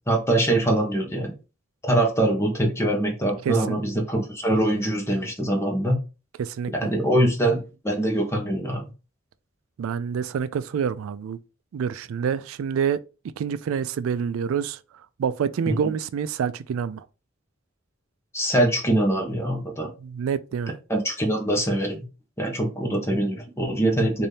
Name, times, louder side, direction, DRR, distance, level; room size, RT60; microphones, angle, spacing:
voice 1, 0.1-1.3 1.8-6.0 6.8-8.8 15.6-15.8 18.3-19.9 20.9-22.0 22.4-24.3, right 1 dB, 15° left, 1.1 m, -23 dB
voice 2, 3.5-3.8 6.4-6.7 9.8-11.4 11.7-13.0 13.4-14.8 15.2-17.0 20.0-20.7, right 7 dB, 90° right, 0.3 m, -27 dB
4.1 x 2.6 x 3.3 m
head